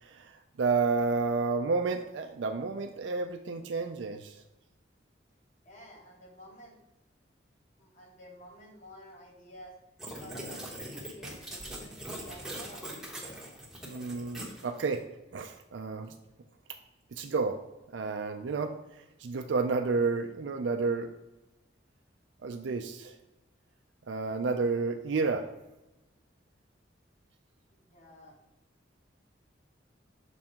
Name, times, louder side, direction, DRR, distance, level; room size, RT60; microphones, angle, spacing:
voice 1, 0.0-4.4 13.8-15.0 15.3-16.1 17.1-17.6 17.9-21.1 22.4-23.2 24.1-25.5, right 4 dB, 75° right, 6 dB, 0.4 m, -31 dB
voice 2, 5.6-6.8 7.8-9.8 10.1-12.9 27.7-28.4, equal, 40° left, -2 dB, 1.4 m, -52 dB
sound 1, 10.0-15.0, right 1 dB, ahead, 1.0 m, -42 dB
6.3 x 3.7 x 4.4 m, 0.97 s
head